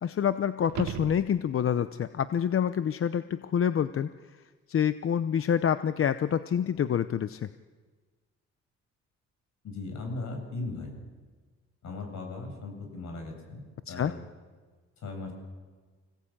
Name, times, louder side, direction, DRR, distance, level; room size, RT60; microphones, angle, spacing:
voice 1, 0.0-4.1 4.7-7.5 13.9-14.1, left 8 dB, 45° left, 13 dB, 0.7 m, -27 dB
sound 1, 0.6-1.9 6.7-6.8, right 12 dB, 70° right, 0.9 m, -38 dB
voice 2, 9.6-11.0 11.8-13.6 13.9-14.2 15.0-15.3, left 3 dB, 65° left, 3 dB, 7.3 m, -37 dB
25.5 x 17.5 x 8.8 m, 1.5 s
cardioid pair, 90°, 30 cm